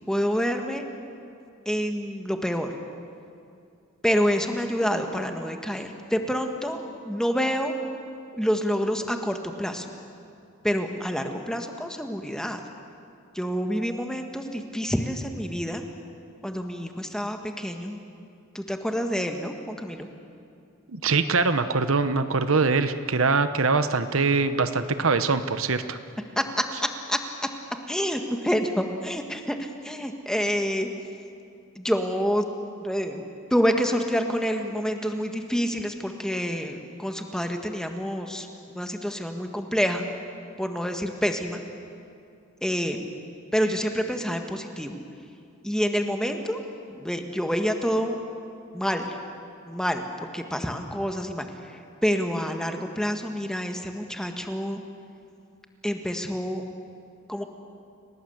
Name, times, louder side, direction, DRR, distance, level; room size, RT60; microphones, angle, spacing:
voice 1, 0.1-0.8 1.6-2.7 4.0-7.7 8.4-9.9 10.6-12.6 13.3-15.8 16.4-18.0 18.5-20.1 26.4-26.6 27.1-27.2 27.9-29.6 29.8-30.9 31.7-32.4 32.8-33.2 33.5-38.5 38.7-40.0 40.6-41.6 42.6-43.0 43.5-45.0 45.6-46.6 46.9-48.2 48.7-49.1 49.7-50.0 50.3-51.4 52.0-54.8 55.8-56.6 57.3-57.4, equal, 5° left, 4 dB, 1.5 m, -27 dB
voice 2, 20.9-26.0, right 4 dB, 70° right, 10 dB, 1.0 m, -23 dB
30.0 x 18.0 x 8.0 m, 2.5 s
head